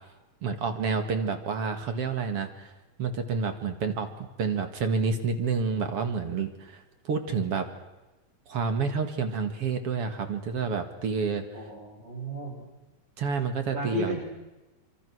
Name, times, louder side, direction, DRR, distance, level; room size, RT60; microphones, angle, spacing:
voice 1, 0.4-2.7 3.0-4.1 4.4-7.7 8.5-11.6 13.2-14.2, right 5 dB, 50° right, 7 dB, 2.6 m, -29 dB
voice 2, 11.5-12.6 13.7-14.2, equal, 70° right, -4 dB, 9.4 m, -33 dB
27.5 x 25.0 x 6.3 m, 1.1 s
omnidirectional pair, 3.9 m